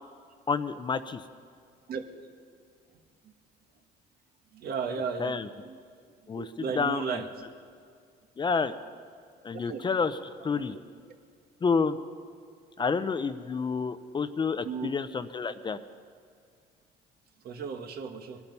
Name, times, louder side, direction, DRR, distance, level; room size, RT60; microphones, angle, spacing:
voice 1, 0.5-1.2 5.2-5.5 6.3-6.5 6.7-7.2 8.4-8.7 9.4-10.2 10.4-10.8 11.6-12.0 12.8-15.8, left 5 dB, 25° left, 12 dB, 0.6 m, -29 dB
voice 2, 4.5-5.8 6.3-7.5 9.5-9.8 10.5-10.6 14.6-14.9 17.4-18.4, right 5 dB, 65° right, 6 dB, 1.4 m, -35 dB
21.5 x 11.5 x 5.5 m, 2.2 s
cardioid pair, 110°, 17 cm